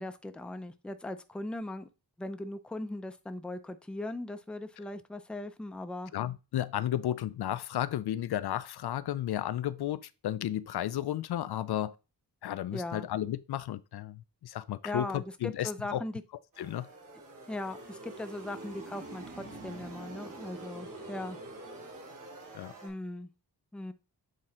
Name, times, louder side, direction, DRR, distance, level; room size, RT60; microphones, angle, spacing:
voice 1, 0.0-1.9 2.2-6.1 12.7-13.1 14.8-16.1 17.5-21.4 22.8-23.3 23.7-23.9, left 1 dB, 5° left, 0.5 m, -39 dB
voice 2, 6.1-11.9 12.4-16.0 16.6-16.9 22.5-22.7, left 12 dB, 75° left, 0.5 m, -33 dB
sound 1, 16.5-22.9, right 2 dB, 55° right, 3.1 m, -46 dB
7.8 x 3.7 x 4.2 m
wide cardioid pair, 135°, 39 cm